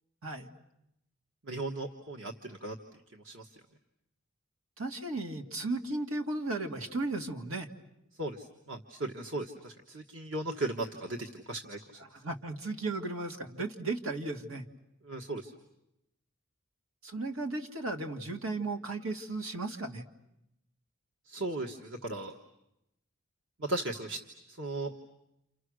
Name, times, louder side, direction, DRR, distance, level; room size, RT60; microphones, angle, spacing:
voice 1, 1.4-2.8 3.1-3.5 8.2-11.8 15.0-15.5 21.3-22.3 23.6-24.2 24.5-24.9, right 2 dB, 60° right, 2 dB, 1.5 m, -37 dB
voice 2, 4.8-7.7 12.1-14.7 17.0-20.0, right 2 dB, 80° right, 5 dB, 2.2 m, -35 dB
30.0 x 28.5 x 6.4 m, 0.85 s
head